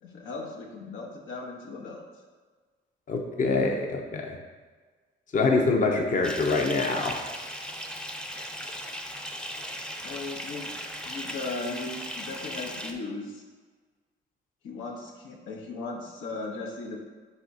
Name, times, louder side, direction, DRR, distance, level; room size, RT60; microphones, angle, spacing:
voice 1, 0.0-2.0 10.0-10.8 11.0-13.4 14.6-17.0, left 3 dB, 85° left, 0 dB, 1.0 m, -37 dB
voice 2, 3.1-4.3 5.3-7.2, left 3 dB, 40° left, 2 dB, 0.7 m, -25 dB
Bathtub (filling or washing) / Fill (with liquid), 6.2-12.9, equal, 5° left, 0.6 m, -37 dB
9.6 x 3.6 x 2.7 m, 1.4 s
cardioid pair, 90°, 20 cm